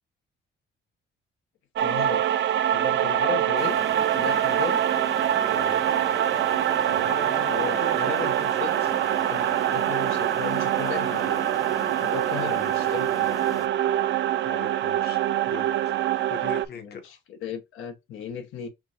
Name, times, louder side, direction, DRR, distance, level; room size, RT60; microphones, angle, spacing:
voice 1, 1.8-2.3 2.7-3.8 4.1-4.8 7.4-8.7 9.3-11.5 12.0-13.4 16.7-18.7, left 7 dB, 85° left, 1.0 m, -35 dB
sound 1, 1.8-16.7, right 11 dB, 65° right, 0.5 m, -24 dB
sound 2, 3.6-13.7, left 3 dB, 15° left, 0.4 m, -39 dB
voice 2, 5.5-5.9 6.9-8.5 8.8-8.9 12.4-12.9 14.4-16.0 16.3-17.1, left 6 dB, 55° left, 1.1 m, -40 dB
5.8 x 2.2 x 2.9 m
cardioid pair, 90°, 20 cm